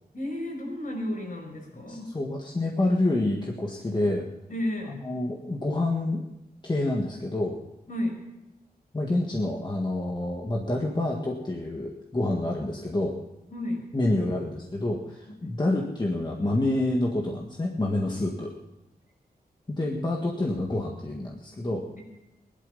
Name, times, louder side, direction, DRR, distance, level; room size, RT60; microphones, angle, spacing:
voice 1, 0.1-2.1 4.5-5.0 7.9-8.2 13.5-13.9 15.3-15.5, left 1 dB, 55° left, 0 dB, 5.9 m, -32 dB
voice 2, 1.9-4.3 4.9-6.2 6.6-7.6 8.9-13.2 13.9-18.5 19.7-21.8, left 2 dB, 30° left, -1 dB, 1.8 m, -28 dB
18.0 x 12.0 x 5.5 m, 0.92 s
wide cardioid pair, 100°, 16 cm